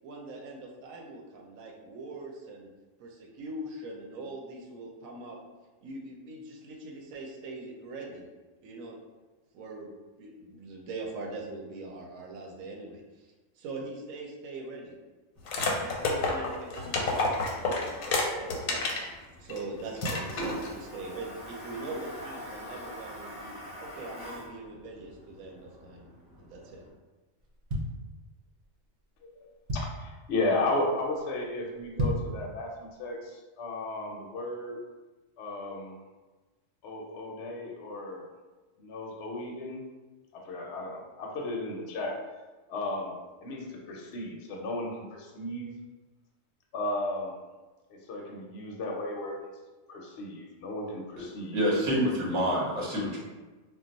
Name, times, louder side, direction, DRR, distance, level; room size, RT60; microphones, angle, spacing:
voice 1, 0.0-2.7 3.0-5.4 5.8-8.3 8.6-9.0 9.5-9.9 10.2-14.9 15.7-18.8 19.4-23.5 23.8-26.1 26.4-26.8, right 2 dB, 85° right, 0 dB, 1.0 m, -42 dB
Toilet flush, 15.3-26.9, right 1 dB, 15° left, 0.7 m, -45 dB
sound 1, 15.5-19.1 19.5-19.6 20.0-20.7, left 3 dB, 85° left, 1.0 m, -29 dB
sound 2, 27.4-28.6 29.1-29.2 29.4-30.2 30.6-30.9 31.2-31.3 31.8-32.4 32.8-32.9, equal, 60° right, 0.8 m, -32 dB
voice 2, 29.7-32.7 33.0-33.2 33.6-34.8 35.4-36.0 36.8-38.2 38.8-39.8 40.3-42.2 42.7-43.1 43.4-45.7 46.7-47.3 47.9-49.4 49.9-51.6, left 2 dB, 65° left, 0 dB, 0.8 m, -34 dB
voice 3, 51.2-53.2, equal, 30° right, -5 dB, 0.7 m, -28 dB
2.3 x 2.2 x 3.8 m, 1.2 s
omnidirectional pair, 1.4 m